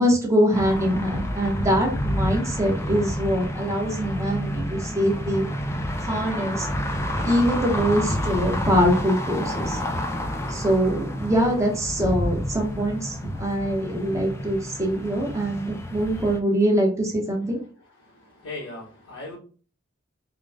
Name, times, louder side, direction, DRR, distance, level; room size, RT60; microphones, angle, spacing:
voice 1, 0.0-5.5 6.0-6.7 7.2-9.8 10.5-17.6, equal, 15° right, 0 dB, 0.8 m, -23 dB
sound 1, 0.5-16.4, equal, 15° left, 0.4 m, -29 dB
voice 2, 18.0-19.4, left 2 dB, 85° left, -6 dB, 1.2 m, -38 dB
3.7 x 2.2 x 3.4 m, 0.39 s
head